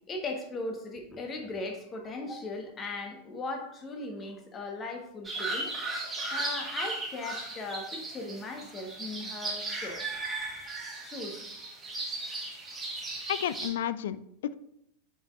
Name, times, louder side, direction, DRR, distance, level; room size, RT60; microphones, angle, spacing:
voice 1, 0.1-5.7 6.3-10.1 11.0-11.4, left 2 dB, 25° left, 3 dB, 1.3 m, -38 dB
sound 1, 5.2-13.7, right 2 dB, 10° right, 1.8 m, -36 dB
voice 2, 13.3-14.5, left 10 dB, 60° left, 15 dB, 0.3 m, -32 dB
9.2 x 5.4 x 2.5 m, 0.78 s
figure-of-eight pair, 90°, 0 cm